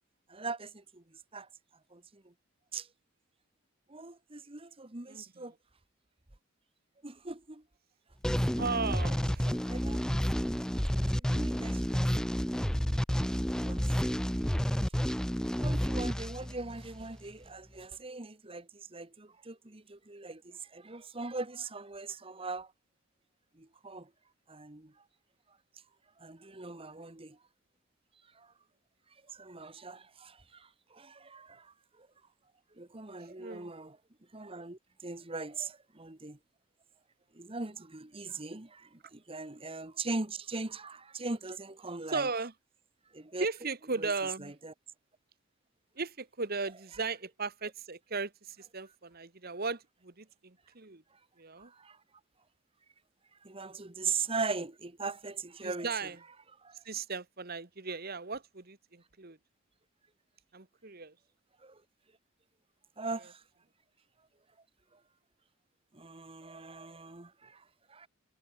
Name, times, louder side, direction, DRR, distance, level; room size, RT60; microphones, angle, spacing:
voice 1, 0.3-1.0 1.3-1.5 1.9-2.3 2.7-2.9 3.9-5.5 7.0-7.6 8.4-8.5 9.4-10.0 11.2-12.1 13.6-13.8 15.6-22.7 23.5-24.1 24.5-24.9 26.2-27.4 28.3-28.5 29.3-32.1 32.8-34.0 34.3-36.4 37.3-42.3 43.1-43.5 44.0-44.1 44.4-44.7 51.6-52.0 53.4-55.9 56.6-56.7 61.6-61.8 63.0-63.4 65.9-67.6 67.9-68.1, right 3 dB, 25° right, 1.4 m, -40 dB
voice 2, 5.1-5.5 8.6-9.7 33.4-33.7 42.1-42.5 43.4-44.5 45.9-51.0 51.4-51.7 55.6-56.2 56.8-59.4 60.5-61.1, right 4 dB, 45° right, 1.6 m, -37 dB
sound 1, 8.2-17.1, equal, 5° left, 0.5 m, -30 dB
head